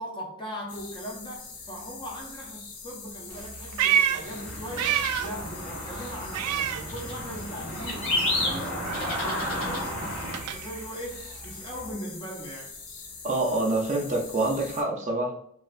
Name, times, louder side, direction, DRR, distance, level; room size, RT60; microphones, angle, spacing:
voice 1, 0.0-12.8, equal, 20° left, 0.5 m, -39 dB
sound 1, 0.7-14.8, left 4 dB, 80° left, 0.6 m, -43 dB
Meow, 3.3-5.5 5.8-7.5 7.7-11.9, right 9 dB, 90° right, 0.3 m, -30 dB
sound 2, 4.2-10.4, left 1 dB, 60° left, 1.0 m, -32 dB
voice 2, 13.2-15.4, right 2 dB, 30° right, 0.5 m, -26 dB
3.2 x 2.4 x 2.4 m
head